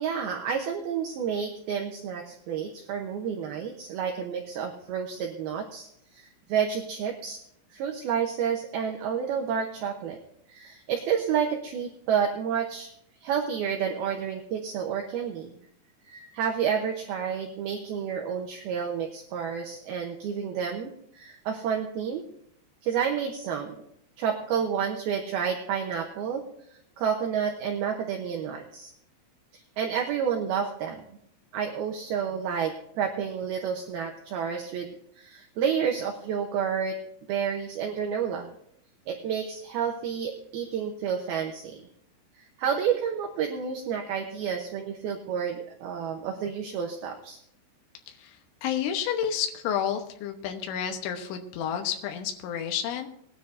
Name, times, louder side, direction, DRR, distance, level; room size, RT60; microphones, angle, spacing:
voice 1, 0.0-5.9 6.1-7.4 7.7-10.2 10.5-12.9 13.2-15.6 16.1-22.2 22.8-23.8 24.2-26.4 27.0-28.9 29.8-31.0 31.5-34.9 35.2-37.0 37.3-38.5 39.1-41.8 42.4-47.4, right 7 dB, 75° right, 2 dB, 2.3 m, -30 dB
voice 2, 48.1-53.1, left 9 dB, 80° left, 4 dB, 3.5 m, -30 dB
20.5 x 9.9 x 2.6 m, 0.70 s
omnidirectional pair, 5.5 m